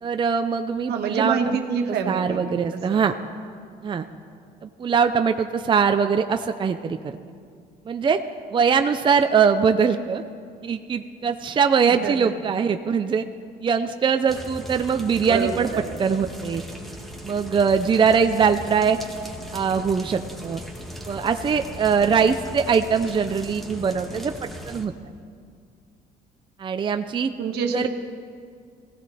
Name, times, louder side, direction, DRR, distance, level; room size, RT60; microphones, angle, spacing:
voice 1, 0.0-1.6 2.1-3.1 3.8-4.1 4.6-7.0 7.9-8.2 8.5-10.2 10.6-13.2 13.6-15.7 16.0-16.6 17.2-19.0 19.5-20.6 21.1-24.3 24.7-24.9 26.6-27.3 27.7-27.9, right 6 dB, 30° right, 7 dB, 0.6 m, -22 dB
voice 2, 0.9-3.0 11.8-12.4 15.3-16.0 27.4-27.9, right 6 dB, 75° right, 4 dB, 1.5 m, -27 dB
sound 1, 14.3-24.9, equal, ahead, 1.9 m, -38 dB
21.0 x 16.0 x 4.3 m, 2.2 s
cardioid pair, 110°, 17 cm